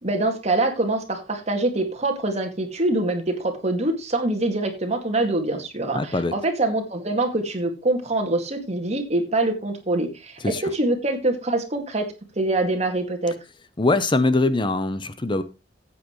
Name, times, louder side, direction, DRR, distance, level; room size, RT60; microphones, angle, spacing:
voice 1, 0.0-13.4, right 2 dB, 35° right, 2.2 m, -24 dB
voice 2, 5.9-6.3 10.4-10.6 13.8-15.4, left 2 dB, 25° left, 0.8 m, -22 dB
14.0 x 8.6 x 3.2 m
head